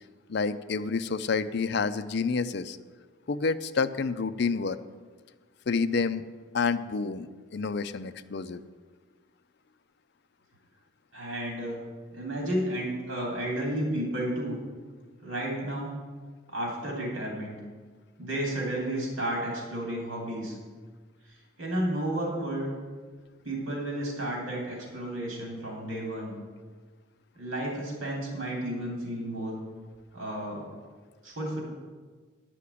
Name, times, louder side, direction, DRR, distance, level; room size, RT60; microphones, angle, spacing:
voice 1, 0.3-2.8 3.3-4.8 5.7-6.2 6.5-8.6, left 4 dB, 55° left, 11 dB, 0.5 m, -29 dB
voice 2, 11.1-11.8 12.1-14.5 15.2-16.0 16.5-17.6 18.2-20.6 21.6-22.8 23.4-26.3 27.4-29.6 30.1-30.7 31.2-31.6, right 1 dB, 80° right, -2 dB, 2.9 m, -32 dB
9.9 x 5.8 x 8.4 m, 1.4 s
head